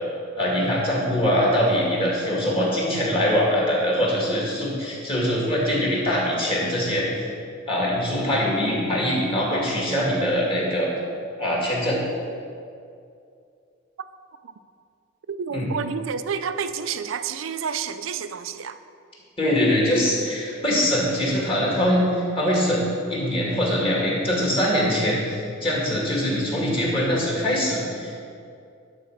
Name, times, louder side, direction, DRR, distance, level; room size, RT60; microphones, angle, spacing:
voice 1, 0.4-7.3 7.7-10.9 11.4-12.0 15.5-15.7 19.4-28.2, equal, 30° left, -4 dB, 2.2 m, -23 dB
voice 2, 15.3-18.8, right 6 dB, 90° right, 12 dB, 0.5 m, -29 dB
11.0 x 4.3 x 6.5 m, 2.4 s
head